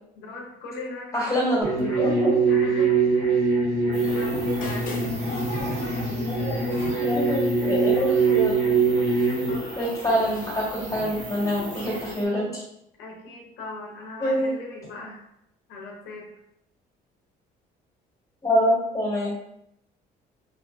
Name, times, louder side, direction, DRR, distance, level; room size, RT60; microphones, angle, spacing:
voice 1, 0.1-1.3 1.6-2.1 2.5-3.5 3.8-5.0 9.5-10.1 13.0-15.2 15.7-16.3, left 2 dB, 85° left, -1 dB, 0.8 m, -39 dB
voice 2, 1.1-2.3 6.2-6.6 7.0-8.6 9.8-12.6 14.2-14.5 18.4-19.4, equal, 20° left, -5 dB, 1.2 m, -25 dB
sound 1, 1.6-9.5, right 4 dB, 65° right, 1.4 m, -23 dB
sound 2, 3.9-12.3, right 4 dB, 45° right, 0.6 m, -43 dB
sound 3, 4.0-12.1, left 2 dB, 55° left, 0.5 m, -38 dB
2.6 x 2.6 x 2.3 m, 0.79 s
cardioid pair, 110°, 17 cm